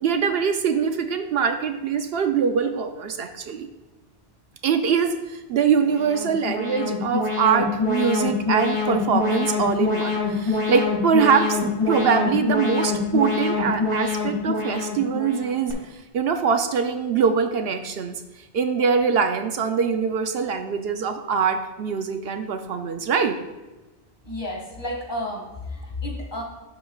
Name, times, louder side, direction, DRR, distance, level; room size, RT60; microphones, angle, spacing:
voice 1, 0.0-3.7 4.6-18.2 18.5-23.4, right 6 dB, 70° right, 7 dB, 0.7 m, -23 dB
Alarm, 5.8-15.7, left 4 dB, 55° left, 1.8 m, -25 dB
voice 2, 24.2-26.4, left 1 dB, 20° left, -3 dB, 1.9 m, -31 dB
11.5 x 5.1 x 2.3 m, 1.1 s
omnidirectional pair, 1.1 m